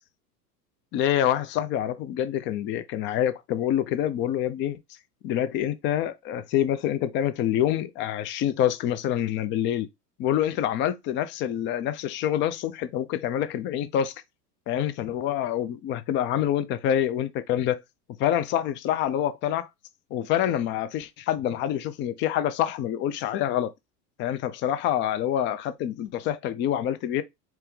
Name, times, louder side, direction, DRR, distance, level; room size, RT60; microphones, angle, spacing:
voice 1, 0.9-4.8 5.2-9.9 10.2-14.1 14.7-17.8 18.2-19.7 20.1-23.7 24.2-27.2, left 11 dB, 25° left, 0.4 m, -26 dB
4.4 x 2.9 x 3.3 m
hypercardioid pair, 90°, 49 cm